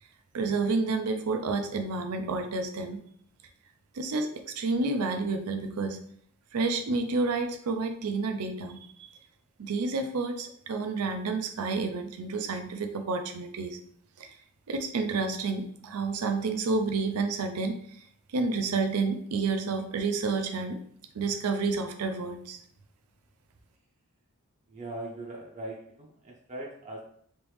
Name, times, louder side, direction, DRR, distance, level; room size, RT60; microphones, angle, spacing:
voice 1, 0.3-3.0 3.9-6.0 6.5-9.1 9.6-13.8 14.2-14.4 14.7-17.8 18.3-20.8 21.1-22.6, right 3 dB, 85° right, 7 dB, 0.5 m, -30 dB
voice 2, 24.7-27.0, right 1 dB, 30° right, -2 dB, 0.5 m, -40 dB
3.3 x 3.0 x 3.1 m, 0.63 s
head